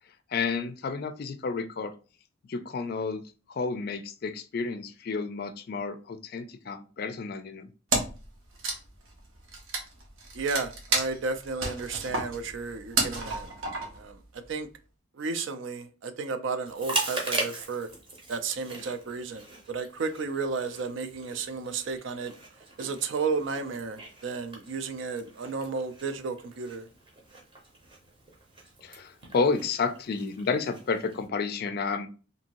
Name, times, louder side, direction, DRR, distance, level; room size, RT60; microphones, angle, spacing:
voice 1, 0.3-1.9 2.5-3.2 3.5-7.7 28.8-32.1, left 4 dB, 50° left, 0.4 m, -31 dB
Wood, 7.9-8.3 8.5-14.1, right 3 dB, 85° right, 0.8 m, -31 dB
voice 2, 10.3-13.5 13.9-14.7 15.1-17.9 18.3-22.3 22.8-26.9, right 4 dB, 70° right, 0.4 m, -33 dB
Chewing mastication, 16.6-31.3, right 2 dB, 25° right, 0.7 m, -40 dB
2.7 x 2.6 x 2.9 m
head